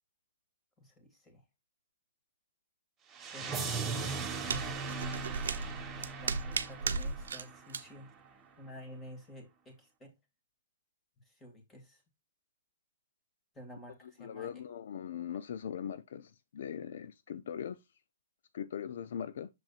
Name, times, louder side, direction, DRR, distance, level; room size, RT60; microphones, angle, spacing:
voice 1, 0.8-1.4 3.3-5.5 5.9-8.1 8.6-10.1 11.2-12.0 13.5-14.6, equal, 10° left, 2.2 m, -52 dB
sound 1, 3.1-8.1, right 4 dB, 15° right, 1.5 m, -39 dB
sound 2, 3.9-7.4 7.7-7.8, right 4 dB, 85° right, 0.7 m, -36 dB
voice 2, 14.2-17.8 18.5-19.5, left 8 dB, 65° left, 0.5 m, -40 dB
7.0 x 6.0 x 2.4 m
hypercardioid pair, 145°, 0 cm